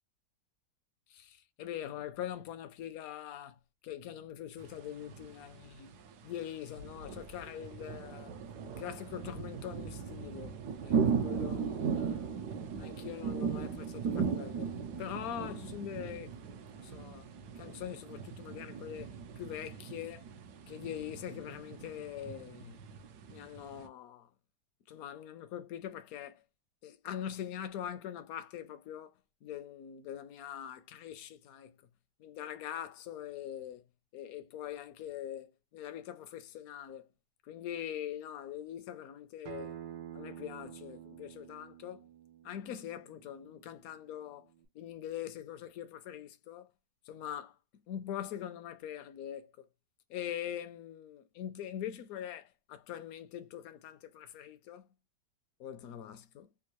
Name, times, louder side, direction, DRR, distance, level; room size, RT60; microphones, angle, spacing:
voice 1, 1.1-6.0 6.2-8.3 8.6-10.6 10.8-12.4 12.8-14.7 15.0-17.3 17.6-20.3 20.7-22.9 23.3-24.3 24.9-26.4 26.8-31.8 32.2-33.8 34.1-37.1 37.4-39.8 40.1-42.0 42.4-44.5 44.7-46.7 47.1-47.6 47.9-49.7 50.1-54.9 55.6-56.5, left 10 dB, 70° left, 0.9 m, -43 dB
sound 1, 4.6-23.9, right 6 dB, 70° right, 1.1 m, -38 dB
Acoustic guitar, 39.5-44.7, right 10 dB, 90° right, 1.4 m, -49 dB
3.6 x 2.3 x 2.9 m
omnidirectional pair, 1.9 m